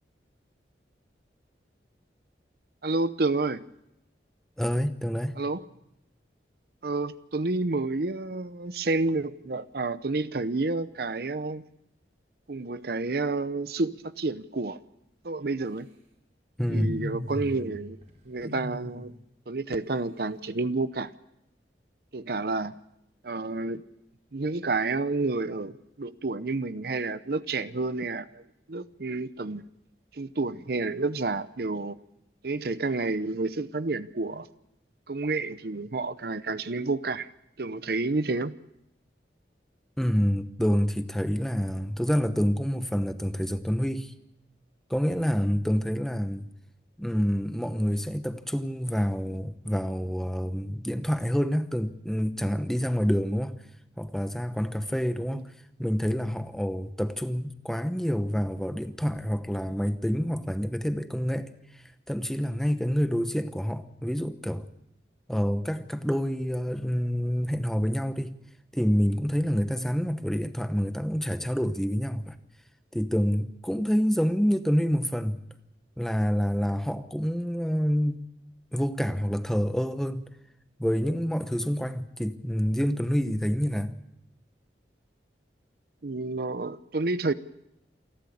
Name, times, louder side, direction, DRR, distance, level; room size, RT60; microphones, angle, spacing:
voice 1, 2.8-3.6 5.4-5.6 6.8-11.6 12.5-14.8 15.2-15.9 16.7-18.0 18.3-19.1 19.5-21.1 22.1-22.7 23.2-23.8 24.3-28.4 28.7-29.6 30.1-32.0 32.4-34.5 35.1-37.3 37.6-38.5 55.3-55.4 86.0-87.3, right 3 dB, 60° right, 0.7 m, -29 dB
voice 2, 4.6-5.4 16.6-16.9 40.0-44.1 44.9-46.5 47.0-53.6 54.0-55.4 55.8-64.7 65.3-68.3 68.7-72.4 72.9-75.4 76.0-78.2 78.7-80.3 80.8-84.0, equal, ahead, 0.9 m, -27 dB
sound 1, 16.6-17.8 18.0-19.0, equal, 40° right, 4.5 m, -37 dB
28.0 x 12.0 x 8.5 m
head